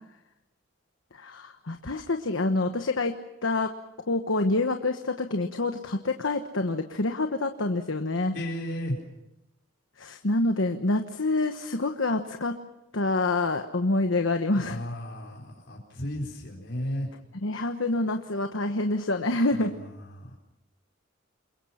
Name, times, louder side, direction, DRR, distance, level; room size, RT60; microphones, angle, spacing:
voice 1, 1.1-3.1 3.4-3.7 4.1-8.3 10.0-12.6 12.9-14.8 17.3-19.7, left 2 dB, 75° left, 6 dB, 1.2 m, -27 dB
voice 2, 8.3-9.0 14.6-17.1 19.6-20.4, left 1 dB, 60° left, -3 dB, 4.4 m, -34 dB
29.0 x 22.5 x 5.8 m, 0.93 s
head